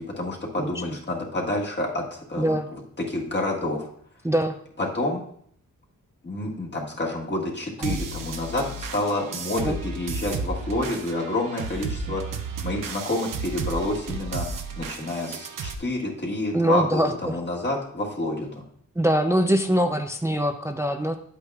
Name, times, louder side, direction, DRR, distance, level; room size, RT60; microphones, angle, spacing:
voice 1, 0.0-2.5 3.0-3.9 4.9-5.2 6.2-12.2 12.6-14.5 14.8-18.6, left 1 dB, 35° left, -2 dB, 1.7 m, -28 dB
voice 2, 2.4-2.7 4.2-4.6 7.8-8.0 9.6-9.8 16.5-17.4 19.0-21.2, equal, 10° right, 5 dB, 0.4 m, -23 dB
sound 1, 7.8-15.7, right 4 dB, 80° right, 0.8 m, -33 dB
10.0 x 8.4 x 2.4 m, 0.64 s
wide cardioid pair, 120°, 32 cm